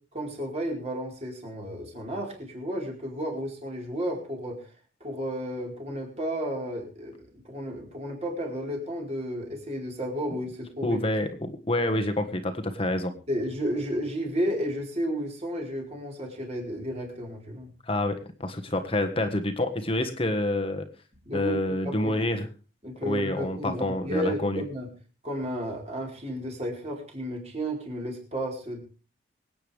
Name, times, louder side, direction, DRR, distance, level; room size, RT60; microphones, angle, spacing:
voice 1, 0.1-4.7 5.0-7.2 7.4-11.0 13.3-17.7 21.2-22.3 22.8-24.9 25.2-28.8, equal, 35° right, -1 dB, 4.5 m, -32 dB
voice 2, 10.8-13.1 17.9-20.9 21.3-22.5 23.0-24.6, left 1 dB, 30° left, 6 dB, 1.5 m, -27 dB
25.0 x 9.2 x 3.5 m, 0.36 s
head